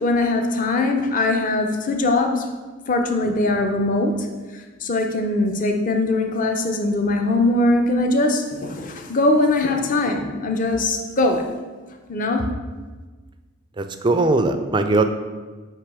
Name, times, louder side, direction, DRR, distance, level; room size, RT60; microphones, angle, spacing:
voice 1, 0.0-2.5 2.9-4.1 4.8-11.4 12.1-12.4, left 2 dB, 35° left, 4 dB, 0.6 m, -21 dB
voice 2, 13.8-15.0, right 2 dB, 20° right, 8 dB, 0.3 m, -19 dB
8.3 x 3.0 x 4.8 m, 1.3 s
head